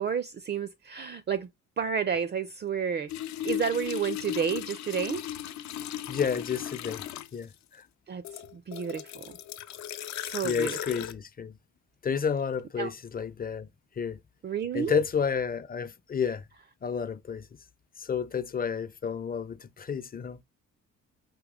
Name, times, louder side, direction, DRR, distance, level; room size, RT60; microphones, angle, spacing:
voice 1, 0.0-1.5 1.8-3.1 3.4-5.2 8.1-9.4 10.2-10.8 12.8-12.9 14.4-15.0, right 7 dB, 35° right, 0.5 m, -31 dB
sound 1, 3.1-7.5 8.2-11.1, left 12 dB, 65° left, 0.7 m, -36 dB
voice 2, 6.1-7.0 7.3-7.9 10.4-11.6 12.0-13.7 14.0-14.2 14.7-16.5 16.8-17.5 18.0-20.4, left 6 dB, 30° left, 0.6 m, -31 dB
5.1 x 2.7 x 3.6 m
cardioid pair, 90°, 30 cm